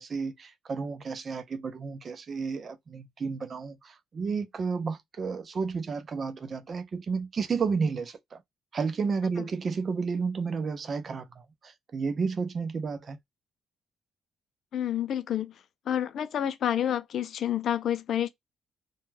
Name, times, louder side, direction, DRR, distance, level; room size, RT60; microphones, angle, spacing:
voice 1, 0.0-8.4 8.7-13.2, right 5 dB, 45° right, 0.5 m, -32 dB
voice 2, 14.7-15.5 15.9-18.3, left 10 dB, 65° left, 0.4 m, -29 dB
2.2 x 2.1 x 3.1 m
cardioid pair, 90°, 0 cm